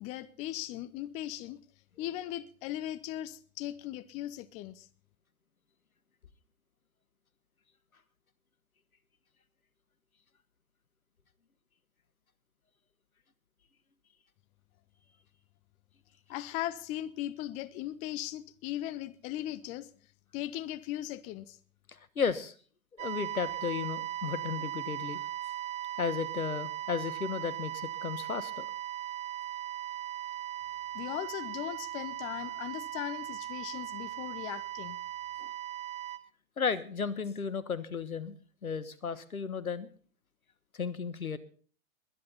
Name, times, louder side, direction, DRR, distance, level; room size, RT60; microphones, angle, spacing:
voice 1, 0.0-1.6 2.0-4.9 16.3-19.9 20.3-21.6 30.9-35.0, left 13 dB, 15° left, 0.5 m, -38 dB
voice 2, 21.9-22.5 23.0-25.2 26.0-28.7 35.4-35.5 36.6-38.4 38.6-39.9 40.7-41.4, left 6 dB, 80° left, 1.5 m, -34 dB
sound 1, 23.0-36.2, right 13 dB, 15° right, 0.8 m, -38 dB
21.5 x 10.0 x 4.0 m
figure-of-eight pair, 105°, 42 cm